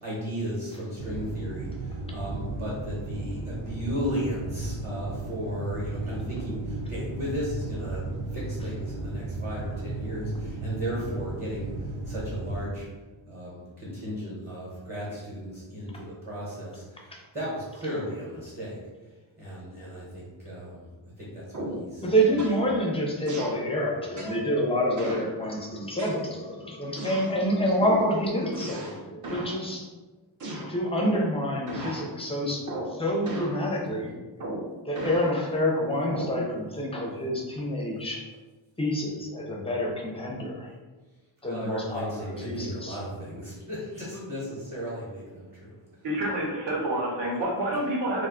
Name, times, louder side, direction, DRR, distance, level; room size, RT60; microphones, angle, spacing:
voice 1, 0.0-12.8 13.3-18.8 19.4-22.1 41.4-45.7, equal, 20° right, -7 dB, 0.9 m, -35 dB
sound 1, 1.0-12.7, right 2 dB, 90° right, 0.6 m, -35 dB
sound 2, 21.5-21.9 22.4-22.6 23.3-23.6 24.2-24.4 25.0-25.3 26.0-26.5 27.0-27.3 27.8-28.1 28.5-29.0 29.2-29.6 30.4-31.3 31.7-32.1 32.7-33.0 33.3-33.6 34.4-35.3 36.1-36.4, right 1 dB, 40° right, 0.5 m, -35 dB
voice 2, 22.0-29.9 30.7-32.6 32.9-34.1 34.9-38.2 38.8-40.7 41.4-43.0, equal, 15° left, -1 dB, 0.4 m, -27 dB
voice 3, 46.0-48.3, right 1 dB, 65° right, -2 dB, 0.9 m, -28 dB
2.5 x 2.2 x 3.6 m, 1.2 s
wide cardioid pair, 155°, 48 cm